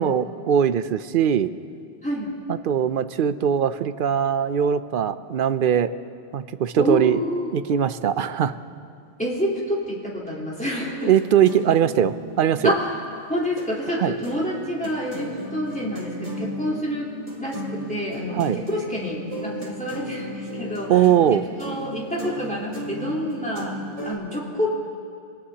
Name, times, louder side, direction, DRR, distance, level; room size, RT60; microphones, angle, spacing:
voice 1, 0.0-1.5 2.5-5.9 6.3-7.2 7.5-8.6 11.1-12.7 14.0-14.1 18.3-18.6 20.9-21.5, right 9 dB, 60° right, 13 dB, 0.6 m, -21 dB
voice 2, 2.0-2.3 6.7-7.5 9.2-11.1 12.6-12.9 13.3-23.8 24.0-24.7, equal, 5° left, -6 dB, 3.8 m, -28 dB
sound 1, 10.9-13.7 14.0-24.1, equal, 30° right, 2.5 m, -35 dB
25.5 x 18.5 x 2.9 m, 2.3 s
omnidirectional pair, 1.1 m